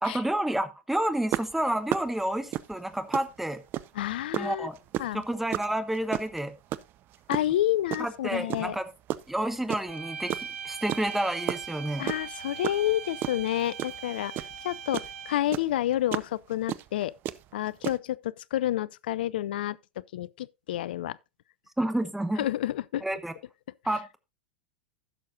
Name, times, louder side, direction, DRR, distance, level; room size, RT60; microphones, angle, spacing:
voice 1, 0.0-3.6 4.4-4.7 5.1-6.6 8.0-8.8 9.3-12.1 21.8-22.4 23.0-23.3 23.8-24.2, right 1 dB, 5° right, 1.0 m, -30 dB
sound 1, 1.3-4.0 4.3-8.1 8.5-10.0 10.3-15.1 15.5-18.0, right 13 dB, 35° right, 0.5 m, -33 dB
voice 2, 3.9-4.7 5.0-5.2 7.3-8.8 12.0-14.3 14.6-17.1 17.5-19.8 20.1-21.2 22.4-23.0, left 13 dB, 65° left, 0.4 m, -29 dB
sound 2, 9.9-15.6, right 6 dB, 70° right, 1.1 m, -40 dB
15.5 x 6.4 x 2.7 m
figure-of-eight pair, 90°, 6 cm